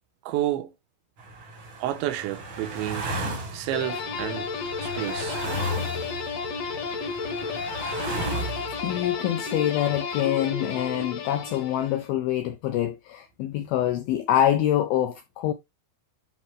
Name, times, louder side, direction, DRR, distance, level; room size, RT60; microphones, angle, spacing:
voice 1, 0.3-0.7 1.8-3.2 3.5-4.5 4.8-5.4, right 13 dB, 80° right, 3.1 m, -30 dB
sound 1, 1.2-9.1, right 1 dB, 60° right, 1.3 m, -34 dB
sound 2, 3.7-12.1, left 5 dB, 60° left, 1.6 m, -32 dB
voice 2, 8.8-15.5, left 11 dB, 85° left, 2.1 m, -25 dB
10.5 x 3.7 x 3.3 m
omnidirectional pair, 5.2 m